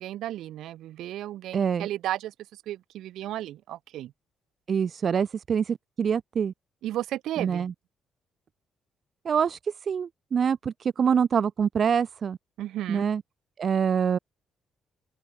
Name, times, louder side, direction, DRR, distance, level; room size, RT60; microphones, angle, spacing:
voice 1, 0.0-2.3 2.7-4.1 6.8-7.7 12.6-13.0, right 13 dB, 80° right, 5.3 m, -34 dB
voice 2, 1.5-1.9 4.7-6.5 7.4-7.7 9.2-12.4 12.9-13.2 13.6-14.2, right 7 dB, 50° right, 2.4 m, -25 dB
open air
cardioid pair, 90°, 0 cm